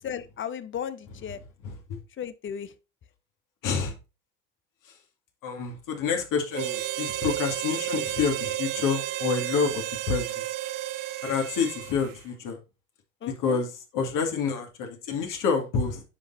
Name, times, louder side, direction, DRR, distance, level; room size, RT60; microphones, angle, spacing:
voice 1, 0.0-1.4 2.2-2.7 13.2-13.6, left 8 dB, 30° left, 0.8 m, -35 dB
voice 2, 3.6-3.9 5.4-10.4 11.2-12.6 13.4-13.7 13.9-16.0, left 5 dB, 55° left, 2.3 m, -28 dB
Harmonica, 6.5-12.2, right 14 dB, 55° right, 0.8 m, -32 dB
9.6 x 5.7 x 2.7 m
hypercardioid pair, 75°, 39 cm